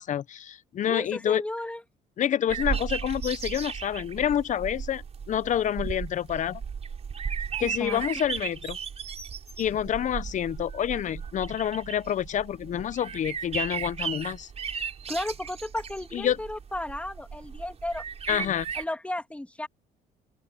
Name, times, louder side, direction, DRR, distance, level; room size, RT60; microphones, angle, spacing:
voice 1, 0.0-1.4 2.2-6.6 7.6-8.8 9.6-14.5 16.1-16.4 18.3-18.7, left 10 dB, 45° left, 0.8 m, -28 dB
voice 2, 0.9-1.8 7.6-8.0 15.1-18.0 18.3-19.7, left 1 dB, 5° left, 2.4 m, -34 dB
sound 1, 2.5-18.8, right 7 dB, 40° right, 5.9 m, -36 dB
open air
cardioid pair, 110°, 17 cm